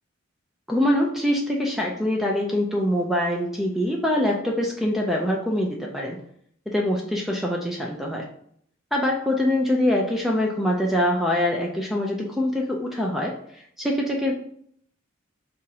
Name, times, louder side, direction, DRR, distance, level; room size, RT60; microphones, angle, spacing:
voice 1, 0.7-6.2 6.7-8.3 8.9-14.3, left 1 dB, ahead, -1 dB, 0.4 m, -24 dB
5.6 x 2.5 x 2.7 m, 0.65 s
head